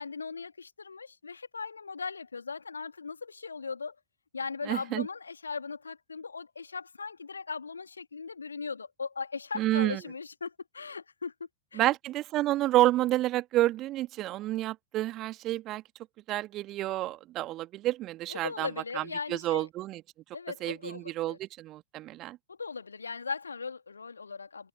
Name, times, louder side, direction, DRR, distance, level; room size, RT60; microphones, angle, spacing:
voice 1, 0.0-3.9 4.3-11.3 11.7-11.8 18.3-19.7 20.3-21.4 22.5-24.7, left 5 dB, 75° left, 2.4 m, -38 dB
voice 2, 4.7-5.1 9.5-10.0 11.8-15.8 16.3-18.7 18.9-20.0 20.6-22.4, right 15 dB, 35° right, 2.0 m, -29 dB
figure-of-eight pair, 90°, 0 cm